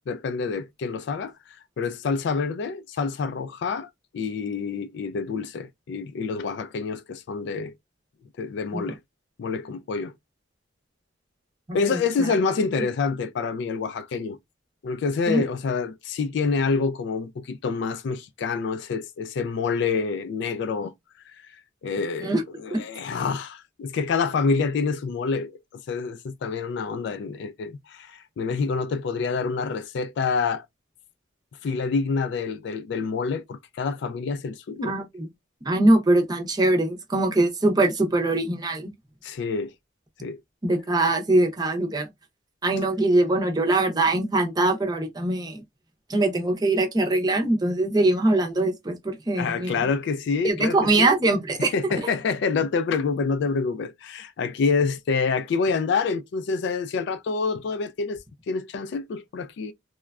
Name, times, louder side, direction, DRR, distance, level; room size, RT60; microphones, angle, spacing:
voice 1, 0.1-1.3 1.8-7.7 8.4-9.0 9.4-10.1 11.7-14.4 14.8-20.9 21.3-21.4 21.8-30.7 31.6-35.0 39.2-39.7 40.2-40.4 49.4-51.1 51.7-58.2 58.5-59.7, left 4 dB, 60° left, 0.3 m, -27 dB
voice 2, 11.7-12.0 15.3-15.4 22.2-22.4 22.7-22.8 34.8-35.3 35.6-38.9 40.6-42.1 42.6-45.6 46.1-49.9 50.4-51.7, right 2 dB, 20° right, 0.6 m, -22 dB
3.0 x 2.2 x 2.3 m
head